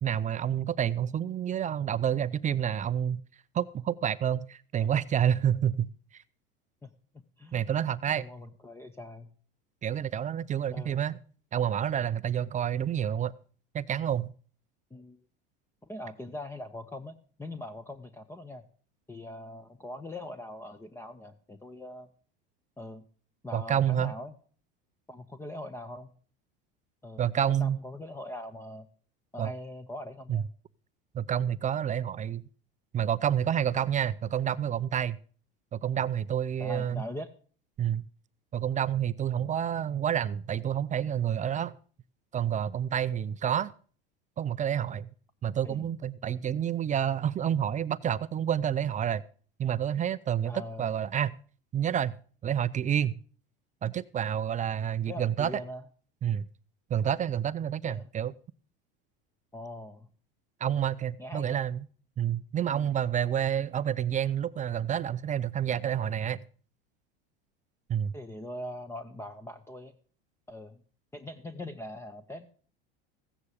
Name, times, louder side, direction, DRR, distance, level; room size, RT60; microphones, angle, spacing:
voice 1, 0.0-3.2 3.5-5.9 7.5-8.3 9.8-11.2 11.5-13.3 13.7-14.3 23.5-24.1 27.2-27.8 29.4-29.5 30.3-30.4 31.1-32.4 32.9-35.2 35.7-37.0 37.8-38.0 38.5-41.7 42.3-43.7 44.4-45.1 45.4-49.2 49.6-51.3 51.7-52.2 52.4-53.1 53.8-55.5 56.2-56.4 56.9-58.3 60.6-61.8 62.2-66.4 67.9-68.1, right 9 dB, 25° right, 15 dB, 0.5 m, -29 dB
voice 2, 8.2-9.3 10.7-11.1 14.9-15.2 15.8-18.6 19.1-22.1 22.8-23.0 23.4-24.3 25.1-26.1 27.0-27.2 27.5-28.9 29.3-30.5 36.6-37.3 45.6-45.9 50.5-50.9 55.1-55.8 57.8-58.1 59.5-60.1 61.2-61.7 68.1-69.9 70.5-70.8 71.1-72.5, left 1 dB, 10° left, 10 dB, 0.9 m, -42 dB
15.0 x 9.6 x 4.9 m, 0.43 s
supercardioid pair, 115°, 30 cm